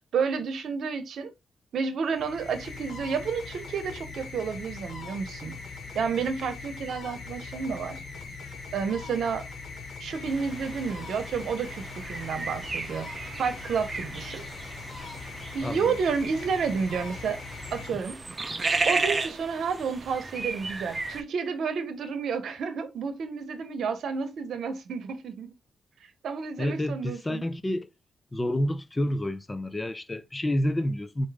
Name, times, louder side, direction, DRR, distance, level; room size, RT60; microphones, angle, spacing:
voice 1, 0.1-1.3 1.7-5.6 5.9-8.0 8.7-9.4 10.0-13.1 13.4-14.4 15.5-17.4 17.7-18.2 18.9-25.5 26.2-27.4, right 5 dB, 75° right, 0.9 m, -30 dB
sound 1, 2.0-18.6, left 4 dB, 60° left, 1.3 m, -41 dB
sound 2, 10.3-21.2, right 3 dB, 35° right, 0.8 m, -34 dB
voice 2, 15.6-16.0 26.6-27.9 28.3-31.3, left 1 dB, 20° left, 0.5 m, -29 dB
4.5 x 2.7 x 3.6 m
supercardioid pair, 55°, 0 cm